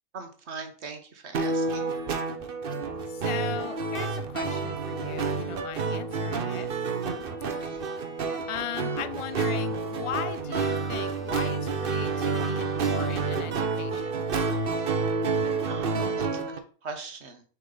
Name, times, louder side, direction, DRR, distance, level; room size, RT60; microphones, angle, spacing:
voice 1, 0.1-1.9 7.6-7.8 15.7-17.4, right 4 dB, 80° right, 5 dB, 1.4 m, -40 dB
sound 1, 1.3-16.6, right 4 dB, 60° right, 1.0 m, -29 dB
voice 2, 3.1-6.7 8.5-14.2, left 9 dB, 60° left, 12 dB, 0.3 m, -38 dB
Bird, 10.4-15.3, left 2 dB, ahead, 1.8 m, -51 dB
6.8 x 4.8 x 3.9 m, 0.40 s
omnidirectional pair, 1.1 m